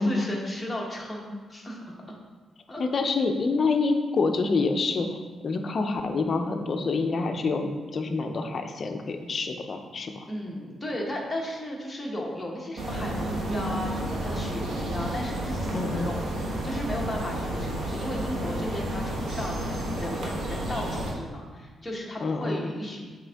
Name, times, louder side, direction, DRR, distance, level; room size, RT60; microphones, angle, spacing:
voice 1, 0.0-1.9 2.7-2.8 10.3-23.2, left 1 dB, 10° left, -3 dB, 0.9 m, -35 dB
voice 2, 2.8-5.2 5.4-10.3 15.7-16.1 22.2-22.7, left 3 dB, 40° left, 5 dB, 0.5 m, -27 dB
sound 1, 12.8-21.1, right 1 dB, 80° right, 1.0 m, -31 dB
6.5 x 4.3 x 3.4 m, 1.4 s
wide cardioid pair, 170°, 0 cm